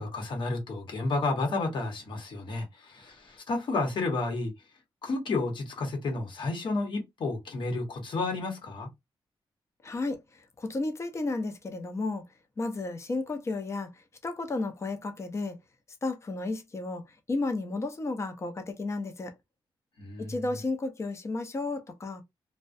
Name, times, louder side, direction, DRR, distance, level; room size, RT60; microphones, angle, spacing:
voice 1, 0.0-4.5 5.0-8.9 20.0-20.3, left 3 dB, 60° left, 0.9 m, -31 dB
voice 2, 9.8-10.2 10.6-12.2 12.6-13.9 14.2-15.6 16.0-17.0 17.3-19.3 20.2-22.2, left 3 dB, 30° left, 0.5 m, -32 dB
2.3 x 2.1 x 2.5 m
wide cardioid pair, 140°, 9 cm